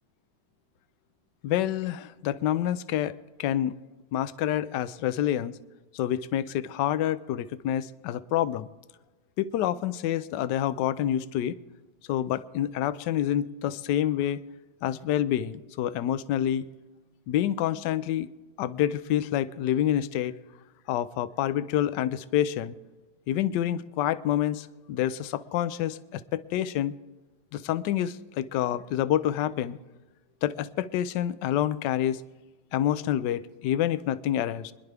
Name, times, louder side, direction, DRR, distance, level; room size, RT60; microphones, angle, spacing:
voice 1, 1.4-3.7 4.1-5.5 5.9-8.7 9.4-11.6 12.1-14.4 14.8-16.7 17.3-18.3 18.6-20.3 20.9-22.7 23.3-26.9 27.5-29.8 30.4-32.2 32.7-34.7, left 11 dB, 75° left, 14 dB, 1.1 m, -27 dB
25.0 x 11.0 x 3.3 m, 1.2 s
omnidirectional pair, 2.2 m